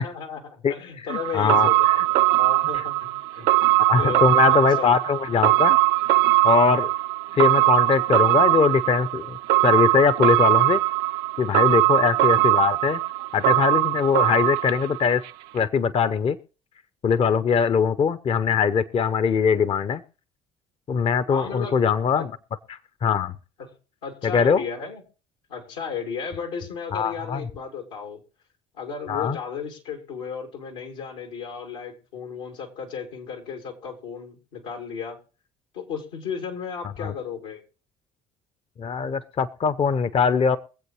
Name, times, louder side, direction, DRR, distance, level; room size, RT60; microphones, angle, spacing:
voice 1, 0.0-3.5 4.0-5.0 11.6-11.8 21.3-21.8 22.2-22.3 23.6-23.7 24.0-25.0 25.5-28.2 28.7-35.2 35.7-37.6, left 6 dB, 90° left, 2 dB, 2.6 m, -34 dB
voice 2, 1.1-1.9 3.8-5.8 6.4-6.9 7.3-9.4 9.6-10.8 11.4-13.0 13.3-15.3 15.5-16.4 17.0-20.0 20.9-22.3 22.7-23.3 24.2-24.6 26.9-27.4 29.1-29.4 37.0-37.1 38.8-40.6, left 6 dB, 40° left, 14 dB, 0.7 m, -21 dB
sound 1, 1.1-15.3 15.6-15.7, right 19 dB, 75° right, 0.5 m, -21 dB
23.5 x 7.9 x 3.1 m, 0.36 s
hypercardioid pair, 65°, 15 cm